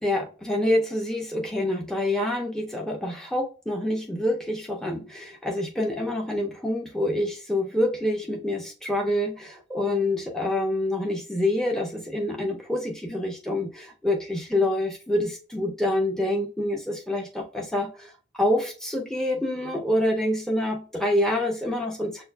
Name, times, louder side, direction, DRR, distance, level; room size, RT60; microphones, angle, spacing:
voice 1, 0.0-22.2, left 1 dB, 5° left, 0.5 m, -27 dB
6.6 x 2.3 x 2.2 m
head